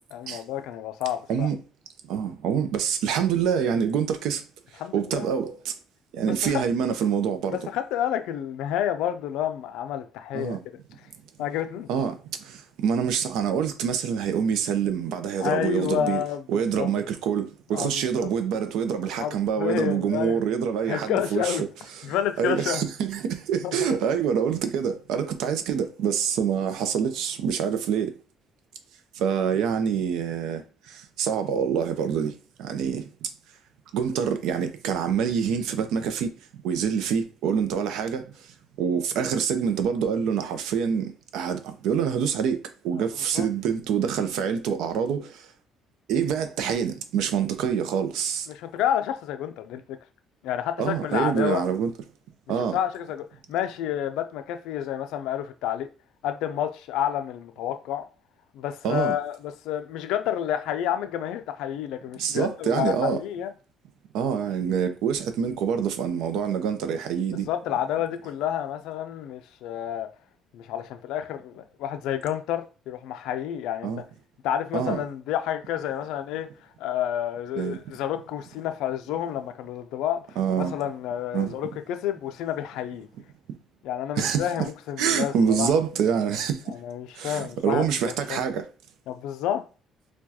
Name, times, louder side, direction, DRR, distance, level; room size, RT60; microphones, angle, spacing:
voice 1, 0.1-1.5 4.8-5.3 6.2-6.6 7.5-10.6 11.4-11.9 15.4-16.9 17.7-18.3 19.2-20.4 20.9-21.6 22.0-22.8 23.6-23.9 43.0-43.1 43.3-43.5 48.5-49.8 50.4-51.6 52.7-55.9 56.2-58.1 58.5-63.5 67.5-70.1 70.5-73.9 74.4-76.5 76.8-80.3 80.5-83.1 83.8-85.7 86.7-88.4 89.1-89.6, left 10 dB, 85° left, 0.3 m, -29 dB
voice 2, 2.1-4.4 4.9-5.7 6.1-7.6 10.3-10.6 11.9-12.1 12.4-16.2 16.5-21.7 22.0-28.1 29.2-32.3 32.6-33.3 33.9-36.3 36.6-38.2 38.8-45.3 46.1-48.5 50.8-51.9 52.5-52.8 58.8-59.2 62.2-63.2 64.1-67.5 73.8-74.0 74.7-75.0 77.6-77.8 80.4-80.7 81.3-81.5 84.2-84.7 85.0-86.7 87.2-88.6, right 7 dB, 80° right, 0.5 m, -26 dB
4.5 x 2.2 x 2.8 m
cardioid pair, 95°, 0 cm